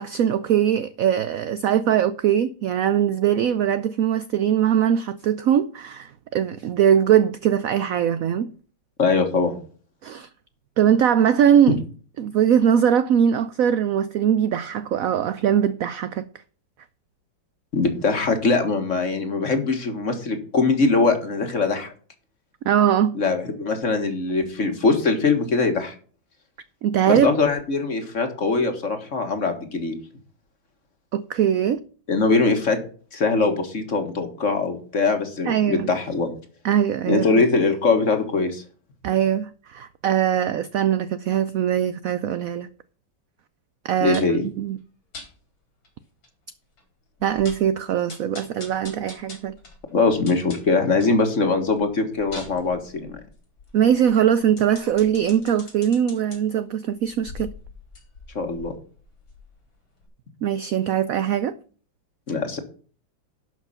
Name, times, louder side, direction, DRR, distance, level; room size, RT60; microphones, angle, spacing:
voice 1, 0.0-8.5 10.0-10.3 10.8-11.8 12.2-16.3 22.7-23.2 26.8-27.3 31.1-31.8 35.5-35.9 36.6-37.4 39.0-42.7 43.8-44.8 47.2-49.5 53.7-57.5 60.4-61.5, right 9 dB, 85° right, 0.7 m, -21 dB
voice 2, 9.0-9.6 11.7-11.8 17.7-21.9 23.1-26.0 27.1-29.9 32.1-32.8 33.1-36.3 37.1-38.6 44.0-44.4 49.9-53.2 58.4-58.7 62.3-62.6, left 3 dB, 40° left, 1.9 m, -22 dB
sound 1, 44.1-44.4 45.1-45.3 45.8-45.9 46.2-46.3 46.8-46.9 47.2-47.7 48.1-51.2 51.6-56.4 57.0-59.7 60.0-60.1, left 3 dB, 85° left, 4.5 m, -43 dB
11.5 x 5.8 x 5.6 m
omnidirectional pair, 2.1 m